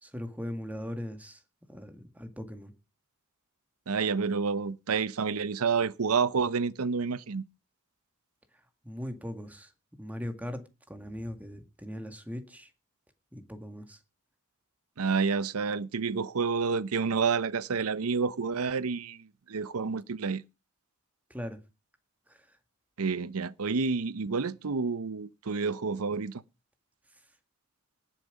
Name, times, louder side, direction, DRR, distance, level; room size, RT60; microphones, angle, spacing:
voice 1, 0.0-1.4 1.7-2.7 8.8-9.7 10.0-12.7 13.3-14.0 21.3-21.6 22.3-22.6 27.1-27.2, equal, 5° right, 1.9 m, -39 dB
voice 2, 3.9-7.4 15.0-20.4 23.0-26.4, right 5 dB, 80° right, 0.7 m, -29 dB
19.0 x 7.4 x 5.2 m
head